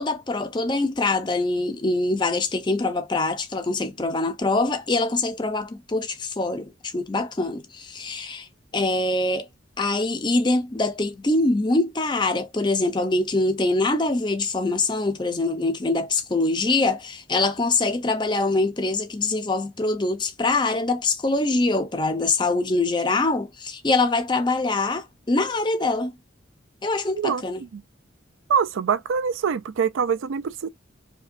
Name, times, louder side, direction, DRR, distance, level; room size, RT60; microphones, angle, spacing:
voice 1, 0.0-8.5 8.7-9.5 9.8-26.2 26.8-27.6, left 2 dB, 20° left, 0.5 m, -24 dB
voice 2, 27.2-27.8 28.5-30.7, right 6 dB, 80° right, 0.4 m, -24 dB
5.0 x 2.2 x 2.5 m
head